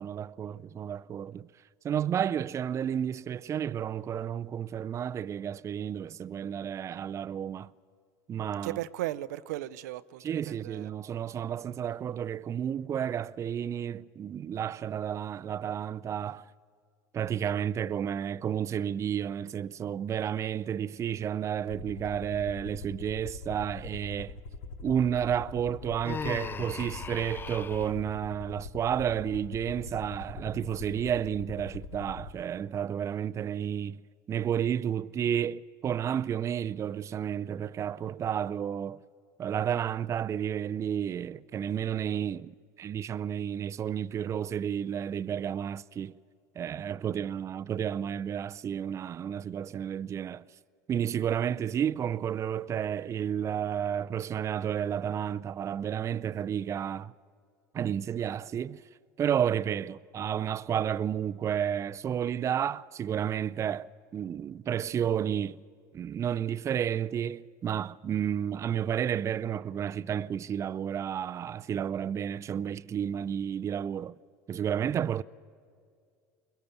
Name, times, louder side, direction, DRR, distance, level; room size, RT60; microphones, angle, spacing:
voice 1, 0.0-1.5 1.8-7.7 8.3-8.8 10.2-16.5 17.1-24.4 24.8-34.0 34.3-39.0 39.4-46.1 46.6-50.4 50.9-57.1 57.7-58.8 59.2-65.6 65.9-74.2 74.5-75.2, right 9 dB, 35° right, 0.5 m, -31 dB
voice 2, 8.6-10.9, right 15 dB, 80° right, 0.5 m, -36 dB
Aircraft, 21.7-32.3, left 4 dB, 80° left, 1.3 m, -43 dB
Human voice, 26.0-27.9, left 5 dB, 25° left, 0.4 m, -38 dB
22.5 x 20.0 x 7.1 m
hypercardioid pair, 85°, 9 cm